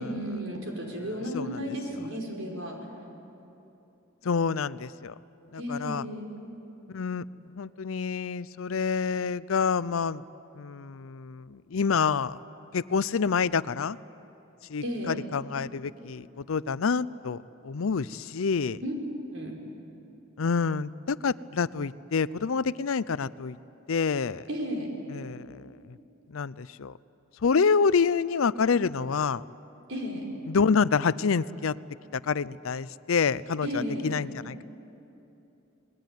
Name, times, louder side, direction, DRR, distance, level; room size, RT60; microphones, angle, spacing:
voice 1, 0.0-2.8 5.6-6.3 14.8-15.2 18.8-18.9 19.3-19.5 24.5-24.9 29.9-30.2 33.6-34.1, equal, 65° right, 0 dB, 5.6 m, -33 dB
voice 2, 4.2-5.1 5.5-6.0 6.9-7.3 7.5-10.2 10.6-12.4 12.7-14.0 14.7-18.8 20.4-23.6 23.9-24.5 25.1-26.0 26.3-26.9 27.4-29.4 30.5-31.8 32.1-34.6, left 5 dB, 75° left, 17 dB, 0.5 m, -27 dB
29.0 x 20.5 x 9.3 m, 2.9 s
head